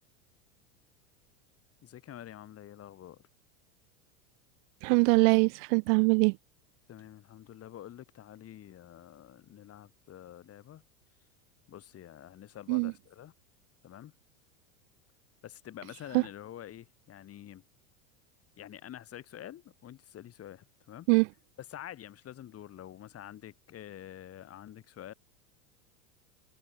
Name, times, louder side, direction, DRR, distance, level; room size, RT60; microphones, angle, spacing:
voice 1, 1.8-3.2 6.9-10.8 11.7-13.3 13.8-14.1 15.4-17.6 18.6-21.1 21.6-25.1, left 11 dB, 35° left, 6.8 m, -47 dB
voice 2, 4.8-6.3 12.7-12.9 16.1-16.2 21.1-21.3, right 33 dB, 55° right, 0.6 m, -23 dB
supercardioid pair, 120°, 41 cm